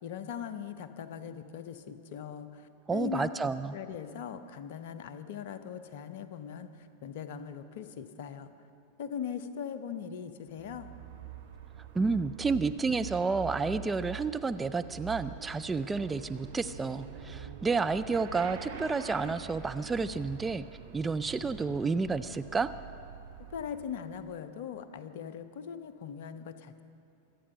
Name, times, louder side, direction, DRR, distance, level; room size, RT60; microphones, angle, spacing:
voice 1, 0.0-8.5 9.0-10.9 23.5-26.8, left 8 dB, 50° left, 10 dB, 0.8 m, -40 dB
voice 2, 2.9-3.8 11.9-20.6 20.9-22.7, right 4 dB, 15° right, 10 dB, 0.4 m, -30 dB
Motorcycle / Accelerating revving vroom, 10.5-24.3, right 8 dB, 60° right, 1.5 m, -45 dB
25.0 x 8.6 x 5.7 m, 2.6 s
figure-of-eight pair, 90°, 0 cm